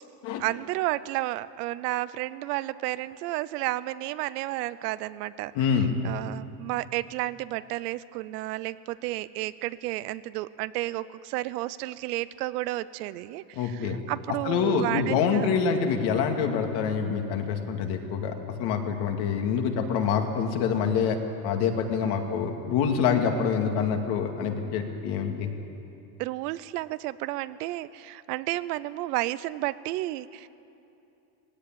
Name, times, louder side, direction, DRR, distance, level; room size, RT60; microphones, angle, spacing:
voice 1, 0.4-15.5 22.0-22.4 26.2-30.5, right 17 dB, 90° right, 16 dB, 0.8 m, -32 dB
voice 2, 5.5-6.0 13.6-14.0 14.4-21.2 21.4-25.5, left 6 dB, 60° left, 4 dB, 2.4 m, -26 dB
19.0 x 16.5 x 9.2 m, 2.8 s
cardioid pair, 145°, 46 cm